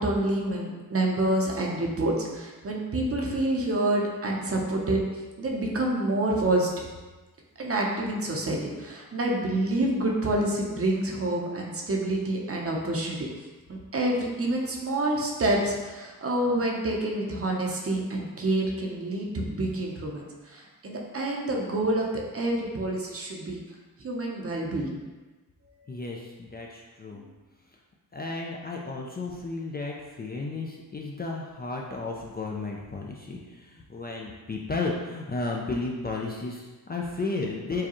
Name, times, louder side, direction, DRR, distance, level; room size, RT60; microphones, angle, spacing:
voice 1, 0.0-5.0 5.4-6.7 7.6-13.2 13.7-23.6 24.0-25.0 27.2-27.3, right 1 dB, 35° right, -1 dB, 0.7 m, -27 dB
voice 2, 25.9-27.2 28.1-37.9, left 3 dB, 25° left, -1 dB, 0.4 m, -33 dB
4.7 x 2.3 x 3.0 m, 1.2 s
cardioid pair, 75°, 38 cm